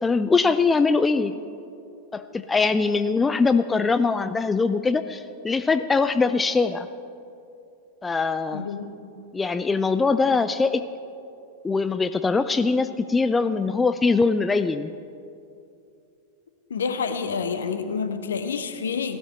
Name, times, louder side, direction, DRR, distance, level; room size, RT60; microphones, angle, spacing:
voice 1, 0.0-1.4 2.1-6.9 8.0-8.7 9.3-10.9 11.6-14.9, left 4 dB, 15° left, 12 dB, 0.4 m, -22 dB
voice 2, 8.5-8.9 16.7-19.2, left 5 dB, 65° left, 10 dB, 0.9 m, -28 dB
16.5 x 12.5 x 4.2 m, 2.6 s
figure-of-eight pair, 90°, 0 cm